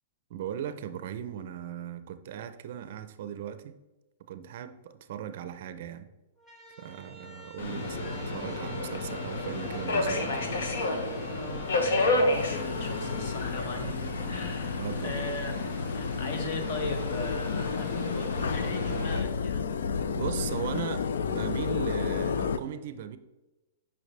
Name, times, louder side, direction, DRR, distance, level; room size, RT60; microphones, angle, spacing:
voice 1, 0.3-3.7 4.2-6.1 6.8-10.5 14.7-15.4 20.1-23.2, right 9 dB, 45° right, 0.5 m, -38 dB
sound 1, 6.4-14.5, right 2 dB, ahead, 0.7 m, -49 dB
Subway metro underground, 7.6-19.2, left 2 dB, 70° left, 1.2 m, -31 dB
voice 2, 11.4-14.0 14.3-15.6 15.9-19.7, left 2 dB, 40° left, 1.1 m, -38 dB
sound 2, 12.3-22.6, left 6 dB, 85° left, 0.5 m, -32 dB
9.3 x 5.5 x 3.3 m
hypercardioid pair, 170°, 0 cm